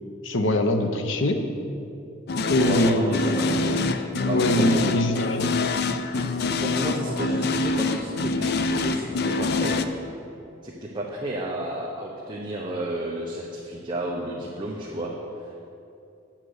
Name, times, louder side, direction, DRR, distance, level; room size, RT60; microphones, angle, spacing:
voice 1, 0.2-1.4 2.5-3.2 4.3-5.5, left 1 dB, 80° left, 6 dB, 0.9 m, -23 dB
sound 1, 2.3-9.9, left 3 dB, 55° left, 0.5 m, -25 dB
voice 2, 2.6-3.9 4.2-4.9 6.6-9.8 10.6-15.1 15.4-15.5, right 1 dB, 25° right, -3 dB, 0.9 m, -32 dB
9.0 x 7.4 x 6.5 m, 2.7 s
head